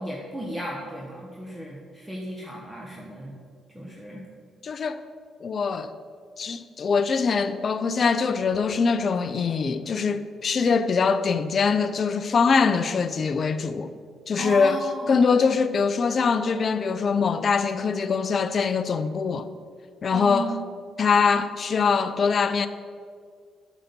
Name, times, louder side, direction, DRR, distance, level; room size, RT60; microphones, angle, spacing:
voice 1, 0.0-3.3 3.7-4.2 14.4-15.2 20.1-20.6, right 1 dB, 10° right, 1.1 m, -34 dB
voice 2, 4.6-5.0 5.4-5.9 6.4-13.9 14.3-19.5 20.0-20.6 21.0-22.7, left 5 dB, 45° left, 0.5 m, -23 dB
8.9 x 4.0 x 6.8 m
cardioid pair, 90°, 0 cm